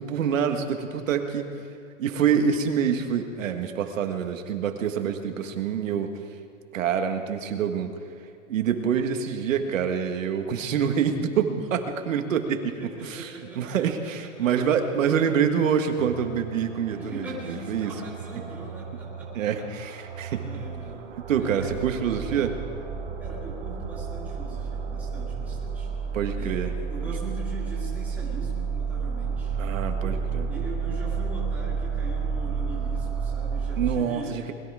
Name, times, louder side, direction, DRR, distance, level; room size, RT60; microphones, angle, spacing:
voice 1, 0.0-1.5 2.0-6.1 6.7-7.9 8.5-17.9 19.3-20.4 21.3-22.6 26.1-26.7 29.6-30.5 33.8-34.5, right 7 dB, 75° right, 6 dB, 1.7 m, -26 dB
voice 2, 12.8-14.7 16.9-19.5 20.4-21.1 21.4-21.8 23.2-25.9 26.3-29.6 29.9-30.2 30.5-34.4, right 1 dB, 5° right, -8 dB, 2.0 m, -41 dB
sound 1, 16.0-33.9, right 5 dB, 50° right, 3.1 m, -31 dB
21.0 x 12.5 x 4.9 m, 2.3 s
supercardioid pair, 175°, 39 cm